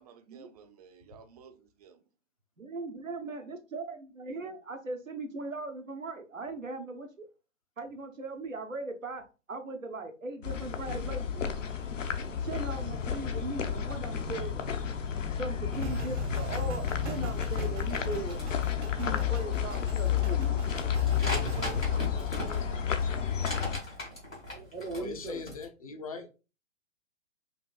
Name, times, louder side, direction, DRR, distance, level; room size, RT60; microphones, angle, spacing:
voice 1, 0.0-2.0 2.7-3.5 21.1-23.5 24.5-24.7, right 6 dB, 30° right, 0.4 m, -48 dB
voice 2, 2.6-7.2 7.8-9.2 9.5-11.5 12.4-14.6 15.4-18.4 19.0-20.6 24.7-25.4, right 3 dB, 85° right, 0.9 m, -39 dB
sound 1, 10.4-23.8, left 8 dB, 75° left, 0.8 m, -31 dB
sound 2, 15.7-21.8, right 4 dB, 65° right, 1.0 m, -41 dB
sound 3, 17.5-25.7, left 1 dB, 90° left, 2.1 m, -41 dB
voice 3, 25.0-26.3, left 4 dB, 30° left, 0.4 m, -40 dB
5.1 x 2.6 x 2.3 m
figure-of-eight pair, 120°, 38 cm